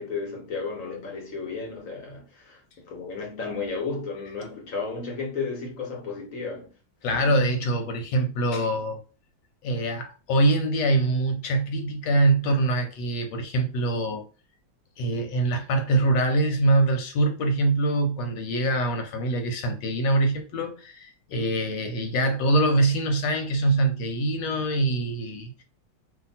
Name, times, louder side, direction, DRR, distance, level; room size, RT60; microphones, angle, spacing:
voice 1, 0.0-6.7 7.1-7.5, left 4 dB, 50° left, 1.2 m, -33 dB
voice 2, 7.0-9.0 9.6-14.2 15.0-25.6, right 2 dB, 80° left, 1.5 m, -24 dB
2.9 x 2.8 x 4.1 m
omnidirectional pair, 2.1 m